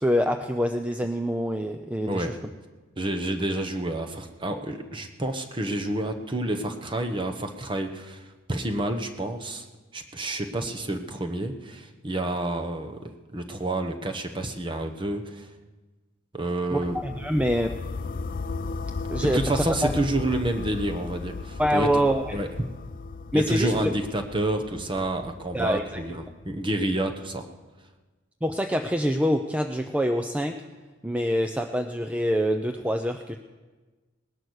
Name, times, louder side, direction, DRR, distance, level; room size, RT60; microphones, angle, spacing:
voice 1, 0.0-2.3 16.7-17.7 19.1-19.9 21.6-22.3 23.3-23.9 25.5-26.0 28.4-30.5 31.0-33.4, equal, 5° right, 6 dB, 0.5 m, -25 dB
voice 2, 3.0-8.2 8.5-9.7 9.9-15.5 16.3-17.0 19.2-22.0 22.3-22.5 23.3-27.4, right 1 dB, 25° right, 5 dB, 1.1 m, -29 dB
sound 1, 16.8-26.7, left 4 dB, 45° left, 0.4 m, -36 dB
19.0 x 11.0 x 6.5 m, 1.3 s
head